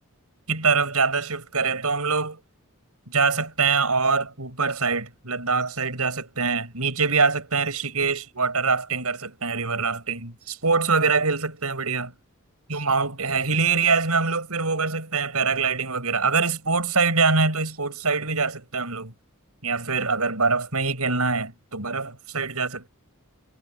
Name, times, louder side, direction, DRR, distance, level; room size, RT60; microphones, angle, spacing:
voice 1, 0.5-2.4 3.1-12.1 12.7-19.1 19.6-22.9, right 4 dB, 90° right, 6.3 m, -24 dB
head